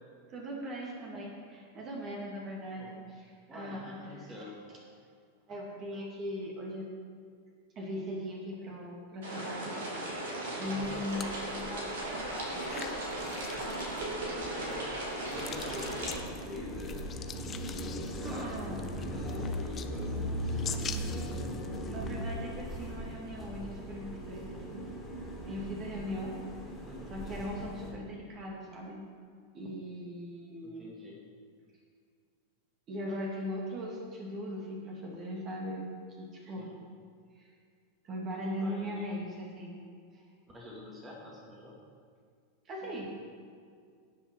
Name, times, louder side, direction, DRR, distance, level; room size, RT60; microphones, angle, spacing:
voice 1, 0.3-4.4 4.7-4.8 5.5-6.9 7.8-9.8 10.6-13.1 13.5-13.9 14.2-14.3 14.7-14.9 18.2-18.8 20.4-20.6 21.9-24.9 25.4-26.4 27.1-29.0 29.5-30.9 32.9-35.9 36.2-36.7 37.4-37.5 38.0-39.8 40.1-40.2 42.7-43.1, equal, 30° right, -2 dB, 2.3 m, -39 dB
voice 2, 2.7-3.1 3.5-4.6 10.6-11.1 14.0-15.0 15.3-17.1 17.5-18.5 18.9-21.4 26.8-27.2 30.6-31.2 36.6-36.8 38.6-39.0 40.5-41.8, left 2 dB, 15° right, -4 dB, 2.2 m, -47 dB
sound 1, 9.2-16.2, right 1 dB, 60° right, 2.6 m, -37 dB
sound 2, 10.8-23.0, left 7 dB, 25° left, 0.6 m, -46 dB
sound 3, 15.3-27.9, equal, 5° left, 3.1 m, -38 dB
17.0 x 6.4 x 4.6 m, 2.1 s
figure-of-eight pair, 90°, 0 cm